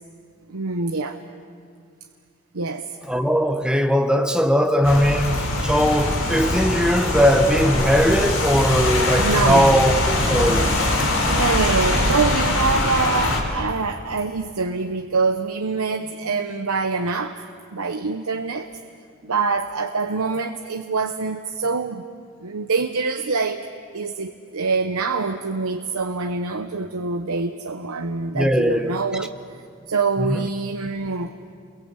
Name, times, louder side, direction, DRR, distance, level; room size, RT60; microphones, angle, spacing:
voice 1, 0.5-1.2 2.5-2.9 9.2-9.8 11.2-17.4 17.7-18.7 19.2-22.0 22.4-23.7 23.9-29.3 29.9-31.3, right 4 dB, 80° right, 0.9 m, -25 dB
voice 2, 3.1-10.8 28.3-28.9 30.2-30.5, equal, 5° right, 0.9 m, -19 dB
Rain, 4.8-13.4, left 2 dB, 60° left, 4.2 m, -22 dB
29.5 x 22.5 x 8.3 m
head